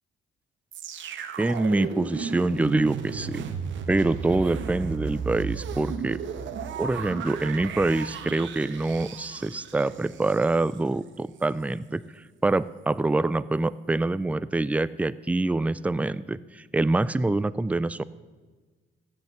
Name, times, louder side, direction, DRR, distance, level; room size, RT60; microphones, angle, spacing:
sound 1, 0.7-10.8 11.4-11.5, right 6 dB, 70° right, 1.1 m, -35 dB
voice 1, 1.4-3.4 3.9-6.2 6.8-12.0 12.4-18.0, right 2 dB, 5° right, 17 dB, 0.4 m, -25 dB
16.0 x 6.7 x 7.1 m, 1.4 s
cardioid pair, 90°, 20 cm